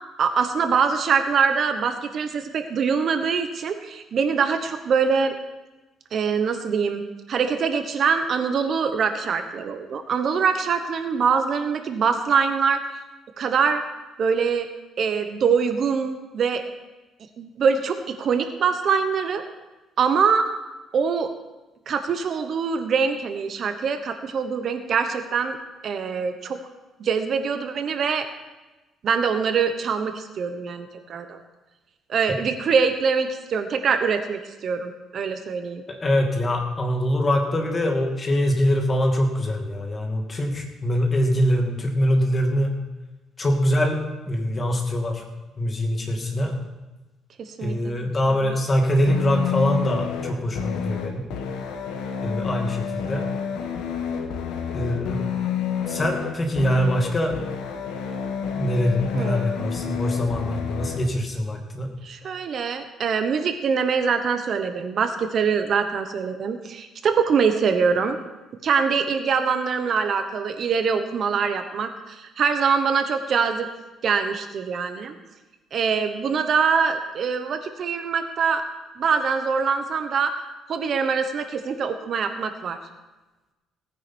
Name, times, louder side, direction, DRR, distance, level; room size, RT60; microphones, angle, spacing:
voice 1, 0.2-5.3 6.1-12.8 13.4-13.8 14.2-14.7 15.0-16.6 17.4-19.4 20.0-20.4 20.9-21.3 21.9-25.6 25.8-26.6 27.0-28.3 29.0-31.4 32.1-35.8 47.6-47.9 59.1-59.6 62.0-68.2 68.6-73.7 74.0-75.2 75.7-78.6 79.0-80.3 80.7-82.8, right 6 dB, 50° right, 8 dB, 1.1 m, -23 dB
voice 2, 35.9-42.7 43.4-44.0 44.3-45.2 45.6-46.6 47.6-51.2 52.2-53.2 54.7-55.3 55.9-57.4 58.6-61.9, equal, 25° left, 2 dB, 2.3 m, -23 dB
sound 1, 49.1-61.1, left 7 dB, 85° left, 1.6 m, -29 dB
18.0 x 9.7 x 4.5 m, 1.1 s
cardioid pair, 120°, 0 cm